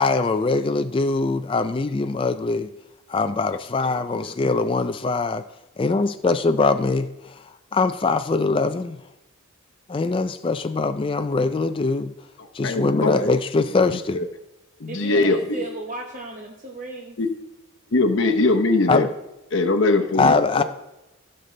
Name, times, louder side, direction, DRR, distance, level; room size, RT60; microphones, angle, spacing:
voice 1, 0.0-2.7 3.1-5.4 5.8-7.4 7.7-9.0 9.9-12.1 12.5-14.3 18.9-19.0 20.2-20.6, left 3 dB, 25° left, 9 dB, 0.3 m, -22 dB
voice 2, 3.9-4.3 12.4-14.3 14.8-15.6 17.2-17.3 17.9-19.1 19.5-20.6, left 2 dB, 60° left, 4 dB, 0.8 m, -22 dB
voice 3, 14.8-17.2, right 2 dB, 35° right, 0 dB, 0.9 m, -34 dB
15.5 x 6.7 x 3.3 m, 0.97 s
head